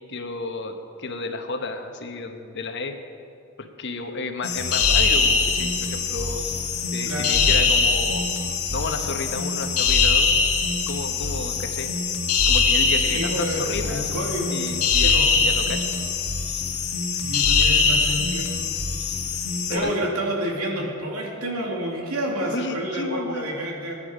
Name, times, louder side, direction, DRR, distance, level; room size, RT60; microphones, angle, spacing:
voice 1, 0.1-2.9 3.8-6.4 6.9-8.3 8.7-10.3 10.9-11.9 12.5-15.9 19.7-19.9 22.5-23.5, left 3 dB, 55° left, 5 dB, 1.1 m, -32 dB
sound 1, 4.4-19.8, left 4 dB, 85° left, 1.6 m, -22 dB
voice 2, 7.0-7.4 13.0-14.6 14.9-15.3 17.2-18.5 19.7-24.0, equal, 90° right, -1 dB, 2.6 m, -29 dB
19.0 x 10.0 x 5.0 m, 2.5 s
head